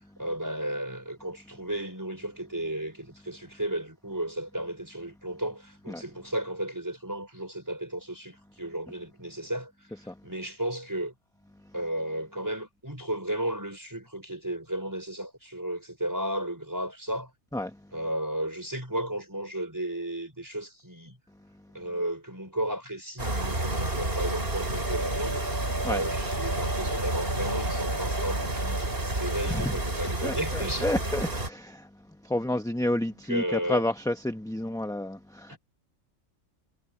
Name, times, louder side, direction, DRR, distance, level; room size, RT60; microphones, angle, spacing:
voice 1, 0.2-9.7 10.2-11.1 11.7-17.3 17.9-21.2 21.7-25.4 25.8-30.9 33.1-33.8 35.5-35.6, right 1 dB, 15° right, 4.8 m, -34 dB
sound 1, 23.2-31.5, right 1 dB, 45° right, 4.8 m, -30 dB
voice 2, 29.3-29.8 30.2-31.9 32.2-35.6, left 1 dB, 5° left, 0.9 m, -30 dB
omnidirectional pair, 1.3 m